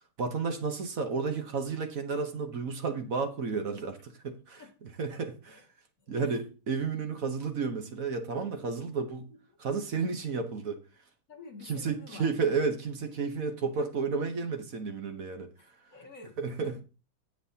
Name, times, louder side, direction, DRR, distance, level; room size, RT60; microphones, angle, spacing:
voice 1, 0.2-5.6 6.1-9.3 9.6-10.8 11.6-15.5 16.4-16.8, right 5 dB, 50° right, 1.3 m, -32 dB
voice 2, 6.0-6.4 11.3-12.3 15.6-16.4, left 4 dB, 40° left, 2.4 m, -49 dB
17.0 x 5.9 x 2.8 m
omnidirectional pair, 2.3 m